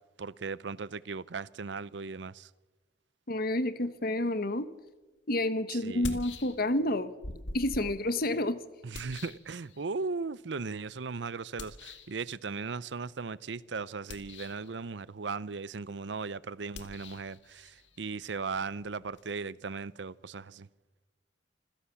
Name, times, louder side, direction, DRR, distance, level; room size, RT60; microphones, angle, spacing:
voice 1, 0.2-2.5 5.7-6.2 8.8-20.7, right 4 dB, 75° right, 0.6 m, -37 dB
voice 2, 3.3-4.7 5.3-7.1 7.5-8.6, left 1 dB, 55° left, 1.3 m, -29 dB
sound 1, 4.9-5.0 5.8-6.9 7.2-10.1 11.6-12.2 14.0-14.7 16.7-19.3, left 2 dB, 85° left, 2.1 m, -45 dB
26.0 x 16.0 x 7.1 m
head